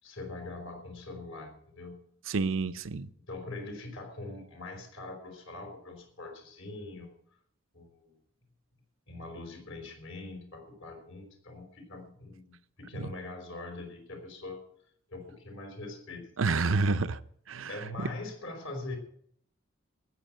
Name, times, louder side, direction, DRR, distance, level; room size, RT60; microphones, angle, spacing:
voice 1, 0.0-2.0 3.3-7.1 7.7-8.1 9.1-14.6 15.1-16.6 17.7-19.0, left 2 dB, 75° left, 4.8 m, -42 dB
voice 2, 2.3-3.1 12.9-13.1 16.4-17.2 17.5-18.1, right 4 dB, 90° right, 0.7 m, -29 dB
14.5 x 8.3 x 8.9 m
head